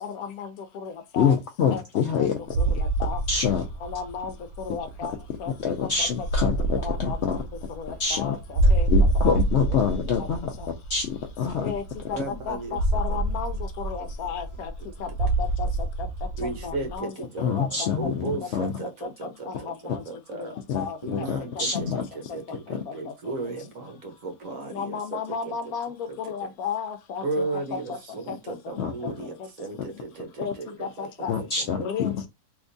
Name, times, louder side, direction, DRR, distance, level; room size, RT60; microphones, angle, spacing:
voice 1, 0.0-1.4 1.7-1.8 2.1-3.2 3.8-5.1 5.4-5.7 6.0-6.3 6.8-8.9 9.2-9.4 9.7-10.3 10.6-10.7 11.6-14.7 15.0-15.7 16.0-16.1 16.4-18.1 18.4-18.7 19.0-20.0 20.4-20.5 20.7-21.8 22.9-23.0 24.7-28.0 28.3-28.6 29.4-29.5 30.4-30.5 30.8-31.3 31.8-32.1, left 6 dB, 70° left, 1.0 m, -34 dB
voice 2, 1.2-2.4 3.3-3.6 5.6-7.3 8.0-8.4 8.9-10.5 10.9-11.6 17.4-18.7 20.7-22.0 28.8-28.9 31.3-32.1, left 6 dB, 85° left, 0.6 m, -26 dB
sound 1, 2.5-17.0, right 2 dB, 80° right, 1.2 m, -27 dB
voice 3, 12.1-12.8 13.1-13.2 16.4-20.6 21.0-25.2 25.4-25.7 26.1-26.2 27.2-31.9, right 3 dB, 60° right, 1.1 m, -35 dB
3.4 x 2.8 x 2.5 m
omnidirectional pair, 1.7 m